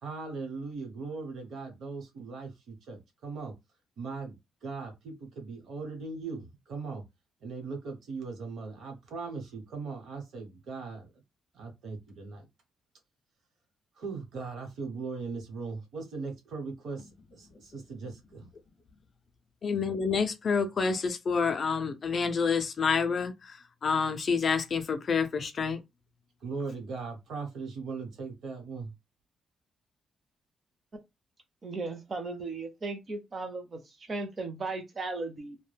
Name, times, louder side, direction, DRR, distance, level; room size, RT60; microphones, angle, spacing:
voice 1, 0.0-3.5 4.0-7.0 7.4-11.1 11.5-12.5 14.0-18.5 26.4-28.9, right 4 dB, 60° right, 1.0 m, -39 dB
voice 2, 19.6-25.8, left 5 dB, 35° left, 0.4 m, -28 dB
voice 3, 31.6-35.6, right 3 dB, 30° right, 0.6 m, -36 dB
2.3 x 2.1 x 3.3 m
cardioid pair, 170°, 0 cm